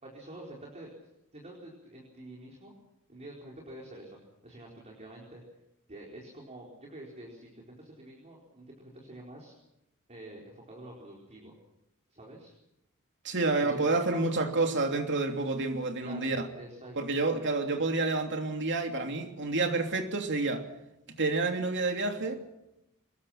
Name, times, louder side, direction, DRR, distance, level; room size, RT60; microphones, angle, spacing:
voice 1, 0.0-0.9 1.3-2.7 3.1-4.2 4.4-5.4 5.9-9.5 10.1-11.5 12.1-12.5 13.6-14.2 15.9-17.1, right 1 dB, 30° right, 4.6 m, -47 dB
voice 2, 13.2-16.5 17.0-20.6 21.2-22.4, right 3 dB, 55° right, 3.0 m, -29 dB
25.0 x 22.0 x 5.9 m
head